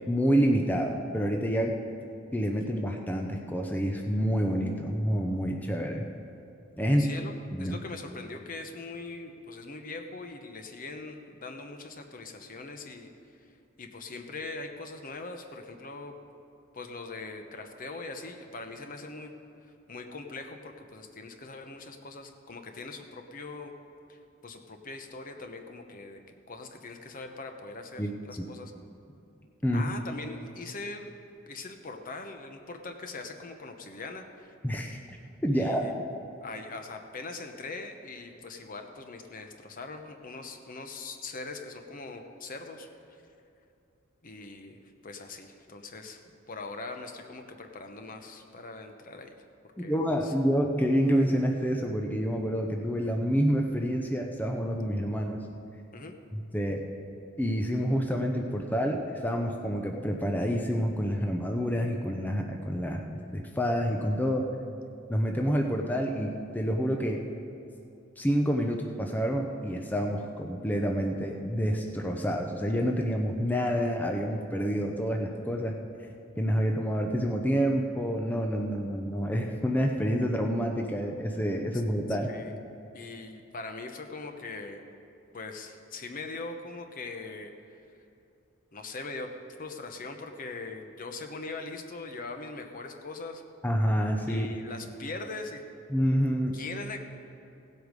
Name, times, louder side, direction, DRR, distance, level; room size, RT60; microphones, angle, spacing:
voice 1, 0.1-1.7 2.3-6.1 6.8-7.1 7.5-7.8 28.0-28.1 28.4-28.5 29.6-29.9 34.6-35.0 35.4-36.0 49.9-55.4 56.5-56.8 57.4-63.0 63.3-64.4 65.1-67.2 68.2-75.7 76.4-82.3 93.6-94.5 95.9-96.6, equal, 10° left, 1 dB, 0.7 m, -28 dB
voice 2, 7.0-7.3 7.6-13.5 13.8-16.2 16.7-19.3 19.6-23.7 24.1-28.7 29.7-31.1 31.5-34.5 35.5-36.0 36.4-43.2 44.2-46.2 46.5-49.3 49.8-49.9 50.2-50.3 55.9-56.1 82.1-82.6 82.9-84.8 85.3-87.8 88.7-89.3 89.6-93.4 94.3-95.6 96.5-97.0, left 3 dB, 45° left, 5 dB, 0.9 m, -41 dB
16.5 x 8.1 x 5.3 m, 2.7 s
head